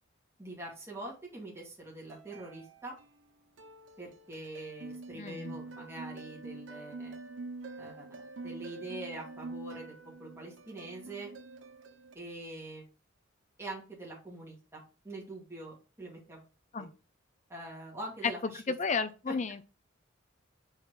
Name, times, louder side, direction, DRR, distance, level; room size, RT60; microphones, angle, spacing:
voice 1, 0.4-2.9 4.0-7.2 7.8-8.2 8.4-11.3 12.1-12.9 13.6-16.4 16.8-16.9 17.5-18.6 19.3-19.4, right 2 dB, 15° right, 2.0 m, -44 dB
sound 1, 2.1-3.3 3.6-12.1, right 3 dB, 65° right, 0.7 m, -46 dB
voice 2, 5.1-5.6 16.7-16.9 18.7-19.6, left 4 dB, 35° left, 0.5 m, -33 dB
4.8 x 4.2 x 4.8 m
head